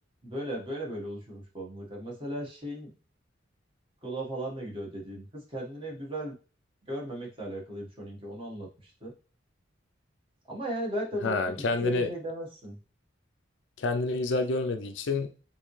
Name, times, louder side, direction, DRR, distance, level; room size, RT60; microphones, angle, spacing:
voice 1, 0.2-2.9 4.0-6.4 6.8-9.1 10.5-12.8, right 1 dB, 25° right, -2 dB, 1.5 m, -36 dB
voice 2, 11.2-12.1 13.8-15.3, left 3 dB, 65° left, 7 dB, 0.5 m, -28 dB
5.5 x 2.8 x 3.2 m, 0.35 s
head